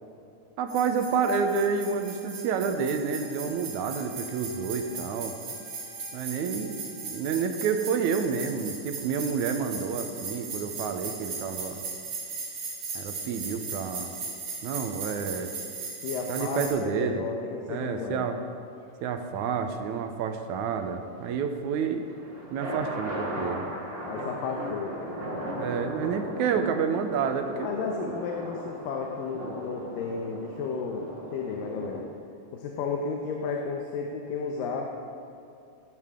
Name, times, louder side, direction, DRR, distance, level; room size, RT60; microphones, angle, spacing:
voice 1, 0.6-5.4 6.1-11.8 13.0-14.1 14.6-15.5 16.3-17.3 17.7-18.4 19.0-22.0 22.5-23.7 25.6-28.1, right 6 dB, 75° right, 6 dB, 2.0 m, -29 dB
sound 1, 0.7-16.7, right 4 dB, 55° right, 3.9 m, -38 dB
Trumpet, 1.2-7.9, left 2 dB, 60° left, 4.3 m, -54 dB
voice 2, 16.0-18.3 24.0-24.9 27.5-32.0 32.5-34.9, left 5 dB, 85° left, 1 dB, 2.6 m, -33 dB
sound 2, 21.8-32.0, equal, 25° right, 1.5 m, -37 dB
15.5 x 12.5 x 3.7 m, 2.6 s
omnidirectional pair, 3.8 m